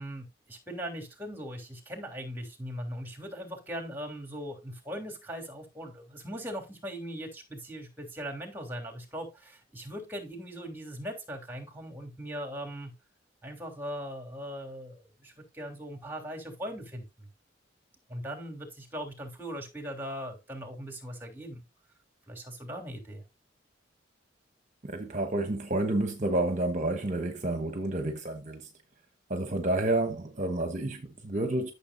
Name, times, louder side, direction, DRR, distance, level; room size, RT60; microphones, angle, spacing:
voice 1, 0.0-12.9 13.4-17.3 18.1-21.6 22.3-23.2, equal, 10° right, 3.2 m, -40 dB
voice 2, 24.8-28.7 29.3-31.7, right 2 dB, 40° right, 1.1 m, -30 dB
13.0 x 6.9 x 2.7 m
head